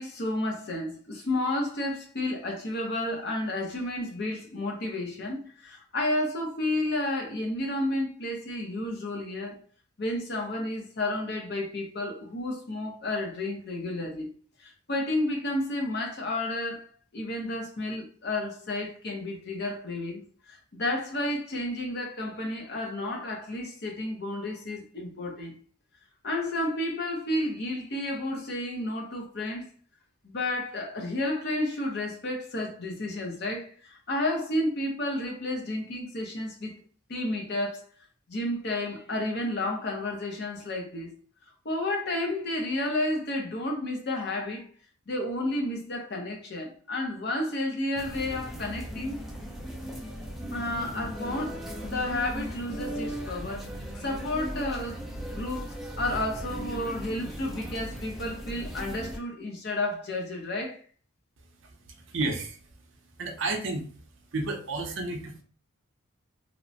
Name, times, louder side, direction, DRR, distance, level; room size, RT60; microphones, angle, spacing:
voice 1, 0.0-9.6 10.0-14.3 14.6-25.5 26.2-29.7 30.2-36.8 37.1-37.8 38.3-41.1 41.6-44.7 45.1-49.2 50.5-53.7 54.0-60.8, left 1 dB, 50° left, 0.7 m, -31 dB
sound 1, 48.0-59.2, equal, ahead, 0.3 m, -37 dB
voice 2, 62.1-62.6 63.2-63.8 64.3-65.4, right 2 dB, 60° right, 0.5 m, -31 dB
2.9 x 2.1 x 2.6 m
head